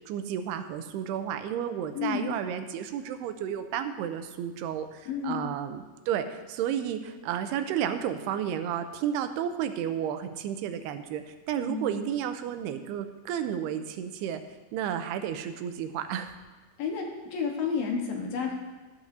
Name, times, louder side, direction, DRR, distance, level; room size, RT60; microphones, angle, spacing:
voice 1, 0.1-5.8 6.1-11.2 11.5-14.4 14.7-16.3, right 9 dB, 90° right, 9 dB, 2.7 m, -32 dB
voice 2, 2.0-2.3 5.1-5.4 11.6-12.1 16.8-18.6, left 5 dB, 70° left, 1 dB, 2.9 m, -31 dB
13.5 x 12.0 x 2.7 m, 1.2 s
omnidirectional pair, 4.6 m